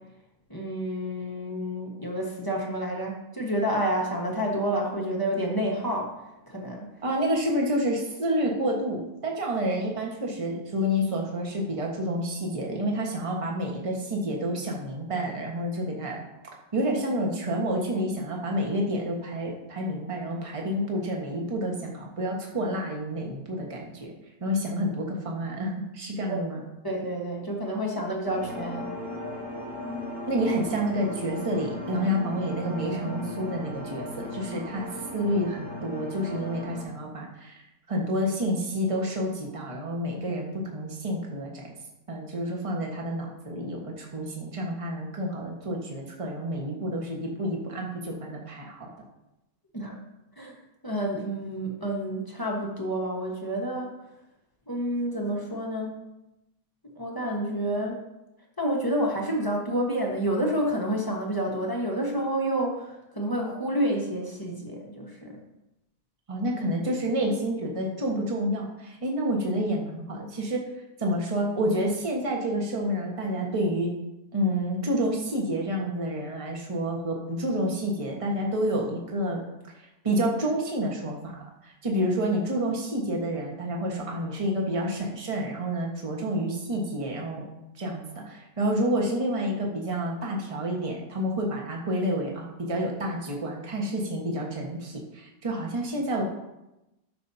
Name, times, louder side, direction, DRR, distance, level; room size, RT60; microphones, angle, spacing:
voice 1, 0.5-6.1 6.5-6.9 26.3-26.4 26.8-28.9 49.7-50.0 50.4-50.5 50.8-53.9 54.7-55.9 57.0-58.0 58.6-65.4, right 1 dB, 15° left, -2 dB, 1.2 m, -29 dB
voice 2, 7.0-16.2 16.7-24.1 24.4-26.6 30.3-34.9 35.1-37.6 37.9-41.7 42.1-48.9 66.3-70.6 71.0-73.9 74.3-79.4 80.0-81.3 81.6-87.5 87.8-96.2, equal, 20° right, -1 dB, 1.3 m, -29 dB
sound 1, 28.2-36.8, left 1 dB, 85° right, 3.8 m, -37 dB
13.0 x 6.6 x 2.8 m, 0.94 s
omnidirectional pair, 1.9 m